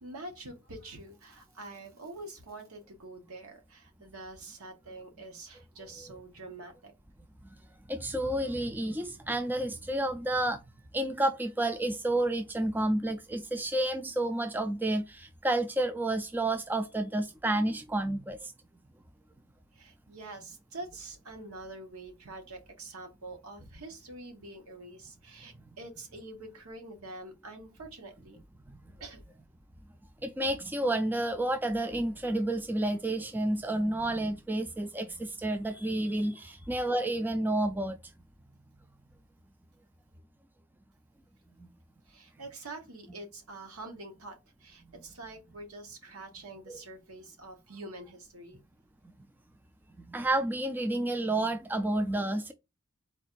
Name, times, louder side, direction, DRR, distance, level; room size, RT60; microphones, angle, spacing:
voice 1, 0.0-6.9 19.7-28.4 29.0-29.2 36.4-36.5 42.1-48.6, right 2 dB, 75° right, 1.3 m, -46 dB
voice 2, 7.9-10.6 10.9-18.5 28.7-28.8 30.2-38.0 46.7-46.8 50.1-52.5, right 1 dB, 10° right, 0.3 m, -30 dB
4.1 x 2.5 x 4.5 m
head